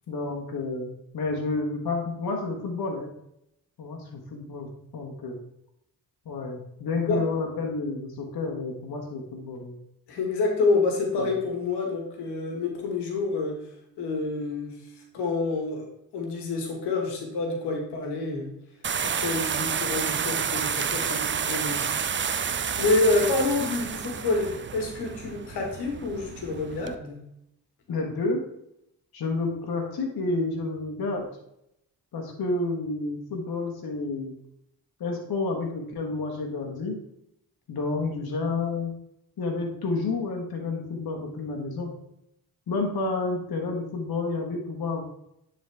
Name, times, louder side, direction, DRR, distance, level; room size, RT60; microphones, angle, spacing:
voice 1, 0.1-3.1 3.8-5.4 6.2-9.7 11.2-11.3 27.9-28.4 29.1-31.2 32.1-34.3 35.0-37.0 37.7-38.9 39.4-41.9 42.7-45.0, left 3 dB, 65° left, 1 dB, 1.4 m, -30 dB
voice 2, 10.1-13.6 14.0-14.7 15.1-15.9 16.1-18.5 19.0-22.0 22.3-27.2, left 3 dB, 85° left, 2 dB, 1.6 m, -28 dB
sound 1, 18.8-26.9, right 7 dB, 30° right, 0.5 m, -30 dB
10.0 x 4.0 x 3.4 m, 0.78 s
supercardioid pair, 55°, 39 cm